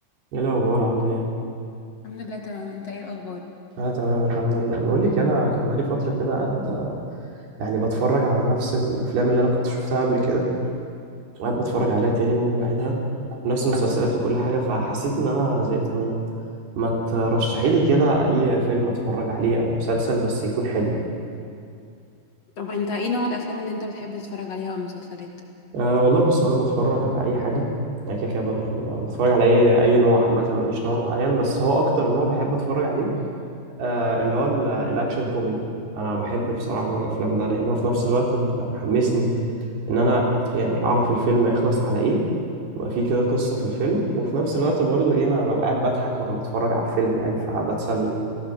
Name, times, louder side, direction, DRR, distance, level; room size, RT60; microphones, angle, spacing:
voice 1, 0.3-1.3 3.8-6.9 7.6-10.5 11.4-13.0 13.3-16.2 16.8-21.0 25.7-27.7 28.1-33.1 33.8-35.6 35.9-39.3 39.9-42.2 42.8-48.1, right 2 dB, 90° right, -2 dB, 5.8 m, -22 dB
voice 2, 2.0-3.4 22.6-25.3, left 3 dB, 45° left, 1 dB, 2.7 m, -30 dB
29.5 x 19.5 x 6.8 m, 2.4 s
omnidirectional pair, 4.5 m